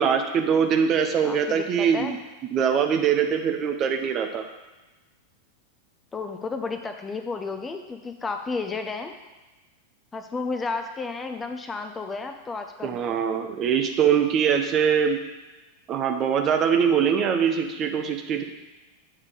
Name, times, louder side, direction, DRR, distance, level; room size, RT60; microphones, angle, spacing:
voice 1, 0.0-2.2 2.5-4.4 12.8-15.2 15.9-18.4, right 7 dB, 30° right, 5 dB, 0.8 m, -22 dB
voice 2, 1.2-2.2 6.1-9.2 10.1-13.0, left 4 dB, 15° left, 6 dB, 0.6 m, -32 dB
8.0 x 3.7 x 6.5 m, 1.2 s
figure-of-eight pair, 90°, 0 cm